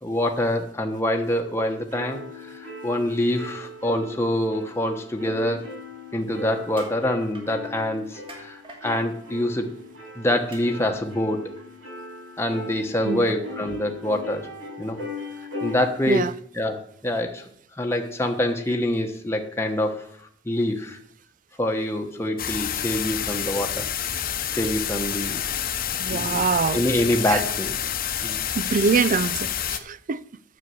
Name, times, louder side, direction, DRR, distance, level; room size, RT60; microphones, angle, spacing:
voice 1, 0.0-5.6 6.1-9.7 10.2-11.4 12.4-14.4 14.8-15.0 15.6-16.3 16.5-17.4 17.8-20.0 20.4-21.0 21.6-23.9 24.5-25.4 26.1-26.5 26.7-27.9 28.2-28.4, left 1 dB, 15° left, 1.1 m, -25 dB
sound 1, 1.9-15.7, left 2 dB, 70° right, 5.7 m, -39 dB
sound 2, 6.7-7.0 7.3-7.5 8.3-8.8 10.5-10.6 11.6-11.7, right 3 dB, 30° right, 2.6 m, -41 dB
sound 3, 22.4-29.8, left 9 dB, 50° left, 0.9 m, -28 dB
voice 2, 26.0-26.8 27.3-27.4 28.6-30.2, right 5 dB, 45° right, 0.5 m, -24 dB
9.8 x 6.9 x 7.7 m
head